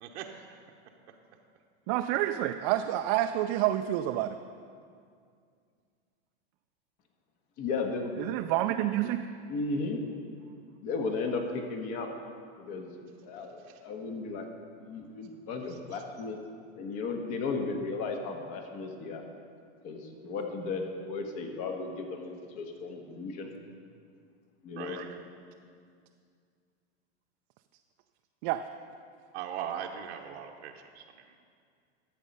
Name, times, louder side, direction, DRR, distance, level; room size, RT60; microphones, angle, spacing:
voice 1, 0.0-0.7 1.1-1.2 13.4-13.8 15.7-16.0 24.8-25.0 29.3-31.4, right 9 dB, 75° right, 1 dB, 0.9 m, -41 dB
voice 2, 1.9-4.4 8.2-9.3 25.0-25.1 28.4-28.6, right 13 dB, 40° right, 6 dB, 0.4 m, -28 dB
voice 3, 7.6-8.3 9.5-10.0 10.8-12.1 12.6-12.9 13.2-14.5 14.8-16.4 16.8-19.2 19.8-23.5 24.6-25.0, left 4 dB, 45° left, 3 dB, 1.4 m, -35 dB
12.0 x 7.4 x 5.4 m, 2.2 s
supercardioid pair, 130°, 33 cm